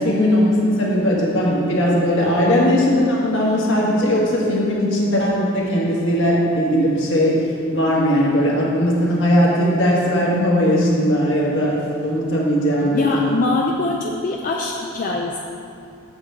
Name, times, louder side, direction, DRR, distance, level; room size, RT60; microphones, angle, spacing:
voice 1, 0.0-7.5 7.7-13.4, equal, 55° left, -4 dB, 1.6 m, -18 dB
voice 2, 12.8-15.4, left 2 dB, 40° left, 0 dB, 0.4 m, -23 dB
7.9 x 6.9 x 3.7 m, 2.5 s
head